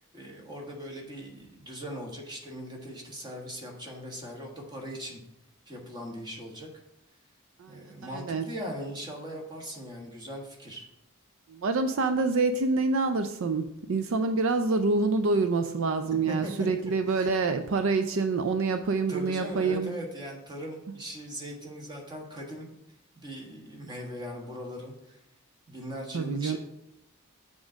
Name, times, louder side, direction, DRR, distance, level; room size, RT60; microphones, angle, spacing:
voice 1, 0.1-5.2 5.7-6.7 7.7-10.8 16.1-16.5 16.9-17.3 19.1-22.7 23.2-25.2 25.7-26.6, equal, 20° right, 0 dB, 1.5 m, -40 dB
voice 2, 7.6-8.5 11.5-19.9 26.1-26.6, right 3 dB, 65° right, 8 dB, 0.4 m, -27 dB
7.2 x 3.8 x 6.2 m, 0.82 s
head